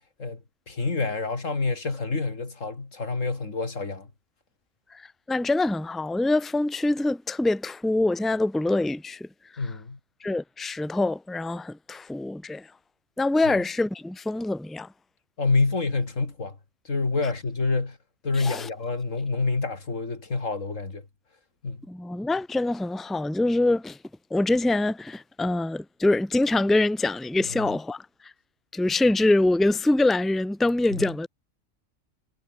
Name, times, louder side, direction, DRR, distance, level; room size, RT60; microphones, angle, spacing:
voice 1, 0.2-4.1 9.6-10.0 13.5-13.6 15.4-16.6 16.8-18.0 18.2-21.0 21.6-21.8 27.6-27.7 30.9-31.0, left 3 dB, 85° left, 3.5 m, -27 dB
voice 2, 4.9-9.3 9.5-9.7 10.2-12.7 13.2-14.9 18.3-18.7 21.9-24.0 24.3-28.3 28.7-31.3, left 2 dB, ahead, 0.9 m, -25 dB
omnidirectional pair, 1.3 m